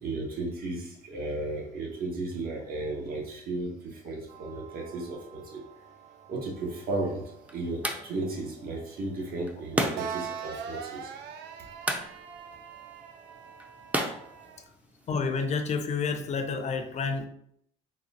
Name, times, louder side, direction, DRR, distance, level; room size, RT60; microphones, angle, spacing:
voice 1, 0.0-5.6 6.3-7.2 7.5-11.1, right 2 dB, 60° right, 0 dB, 1.3 m, -34 dB
sound 1, 4.3-14.6, right 7 dB, 85° right, 0.5 m, -43 dB
sound 2, 6.6-15.1, right 1 dB, 10° right, 0.5 m, -36 dB
voice 2, 15.1-17.3, left 4 dB, 40° left, 7 dB, 0.6 m, -29 dB
4.1 x 2.4 x 4.2 m, 0.71 s
cardioid pair, 110°, 17 cm